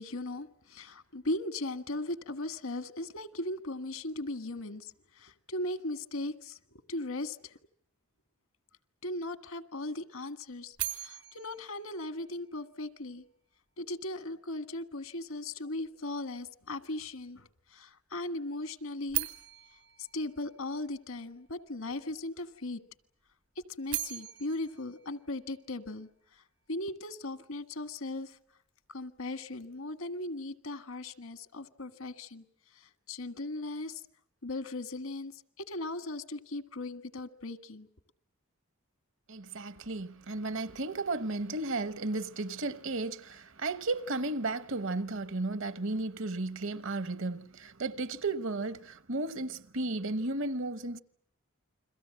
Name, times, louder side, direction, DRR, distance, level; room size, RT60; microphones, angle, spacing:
voice 1, 0.0-6.6 6.9-7.6 9.0-13.2 13.8-19.3 20.0-22.8 23.8-26.4 26.7-28.4 28.9-32.4 32.7-34.0 34.4-37.9, left 2 dB, 85° left, 1.6 m, -38 dB
sound 1, 10.7-12.9 19.1-21.3 23.6-26.0, right 16 dB, 85° right, 3.3 m, -40 dB
voice 2, 39.3-51.0, right 2 dB, 65° right, 1.1 m, -34 dB
29.5 x 22.5 x 7.6 m
head